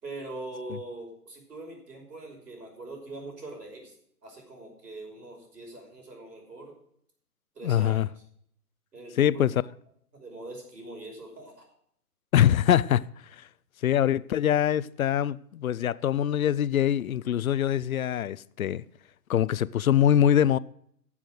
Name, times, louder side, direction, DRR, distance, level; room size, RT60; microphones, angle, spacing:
voice 1, 0.0-3.9 4.2-6.7 7.5-8.1 8.9-9.5 10.1-11.7, right 2 dB, 80° right, 5.7 m, -42 dB
voice 2, 7.6-8.1 9.2-9.5 12.3-13.0 13.4-13.5 13.8-18.8 19.3-20.6, left 10 dB, 60° left, 0.5 m, -23 dB
13.0 x 7.4 x 6.3 m
figure-of-eight pair, 135°, 47 cm